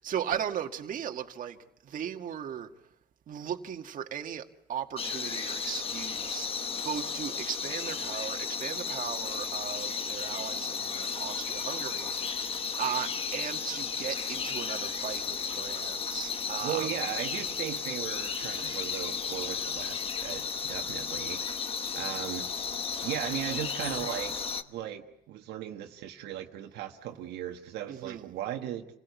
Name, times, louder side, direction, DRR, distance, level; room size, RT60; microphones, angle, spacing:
voice 1, 0.0-2.7 3.3-17.0 18.6-18.8 27.9-28.3, right 9 dB, 50° right, 1.7 m, -37 dB
sound 1, 5.0-24.6, left 6 dB, 35° left, 1.3 m, -34 dB
voice 2, 16.6-21.4 21.9-22.5 23.0-28.9, right 11 dB, 80° right, 1.4 m, -37 dB
28.5 x 17.0 x 8.2 m
cardioid pair, 110°, 17 cm